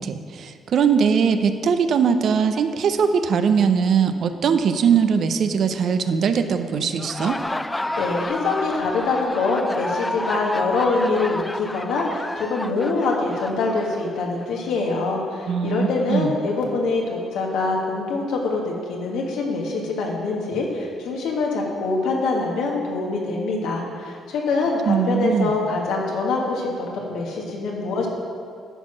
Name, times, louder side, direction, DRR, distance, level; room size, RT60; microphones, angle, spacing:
voice 1, 0.0-7.4 15.5-16.3 24.9-25.6, right 6 dB, 65° right, 9 dB, 0.6 m, -21 dB
Laughter, 6.9-14.5, left 1 dB, 15° left, 0.3 m, -31 dB
voice 2, 8.0-17.0 17.3-28.1, left 3 dB, 85° left, -1 dB, 1.5 m, -24 dB
10.0 x 4.6 x 6.0 m, 2.2 s
cardioid pair, 90°, 0 cm